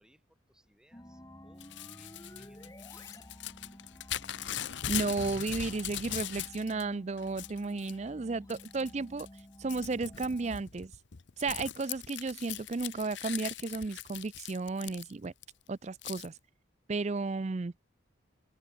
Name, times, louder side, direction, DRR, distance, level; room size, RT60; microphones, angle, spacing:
voice 1, 0.0-3.3, equal, 5° right, 6.2 m, -67 dB
sound 1, 0.9-10.6, equal, 15° left, 3.1 m, -52 dB
Crumpling crinkling / Tearing, 1.6-6.8 7.2-8.0 8.5-8.9 9.2-15.4 16.0-16.3, left 11 dB, 60° left, 0.8 m, -40 dB
voice 2, 4.9-9.3 9.6-10.9 11.4-15.3 15.7-16.3 16.9-17.7, right 3 dB, 35° right, 0.4 m, -33 dB
head